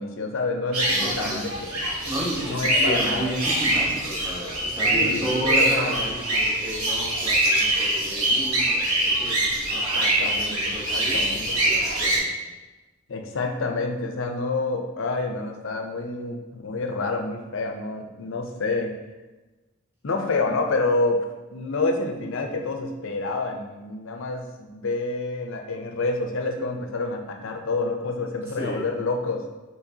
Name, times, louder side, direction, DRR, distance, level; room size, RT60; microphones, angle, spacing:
voice 1, 0.0-1.7 2.5-3.2 4.9-6.0 10.0-11.6 13.1-19.0 20.0-21.2 21.5-29.4, left 3 dB, 60° left, 4 dB, 0.5 m, -28 dB
sound 1, 0.7-12.2, right 1 dB, 90° right, 1.2 m, -24 dB
voice 2, 1.0-1.4 1.8-12.3 28.6-28.8, right 1 dB, 10° right, -5 dB, 1.0 m, -33 dB
5.9 x 3.2 x 2.7 m, 1.2 s
head